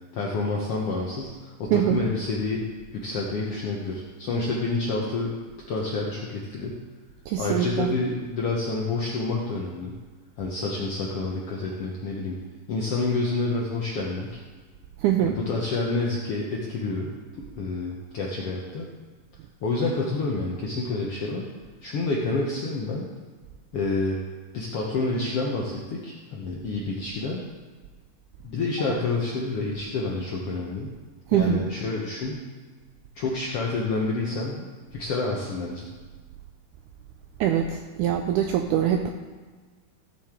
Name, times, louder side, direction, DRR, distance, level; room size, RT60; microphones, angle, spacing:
voice 1, 0.1-2.6 2.9-5.3 5.7-6.8 7.4-9.9 10.4-12.4 12.7-14.4 15.2-17.1 17.5-18.9 19.6-21.5 21.8-23.1 23.7-24.2 24.5-27.4 28.4-30.9 31.3-32.4 33.1-34.7 34.9-35.9, left 3 dB, 75° left, -2 dB, 1.4 m, -28 dB
voice 2, 1.7-2.0 7.3-7.9 15.0-15.4 31.3-31.7 37.4-39.1, right 10 dB, 85° right, 5 dB, 1.8 m, -23 dB
14.5 x 7.4 x 3.7 m, 1.4 s
omnidirectional pair, 4.0 m